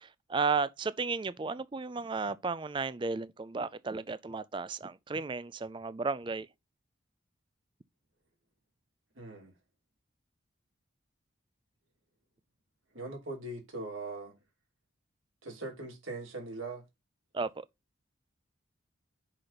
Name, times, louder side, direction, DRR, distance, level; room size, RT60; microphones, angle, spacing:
voice 1, 0.0-6.5 17.3-17.6, right 4 dB, 25° right, 0.3 m, -34 dB
voice 2, 9.1-9.5 12.9-14.3 15.4-16.8, right 2 dB, 80° right, 2.9 m, -40 dB
5.8 x 5.0 x 4.0 m
head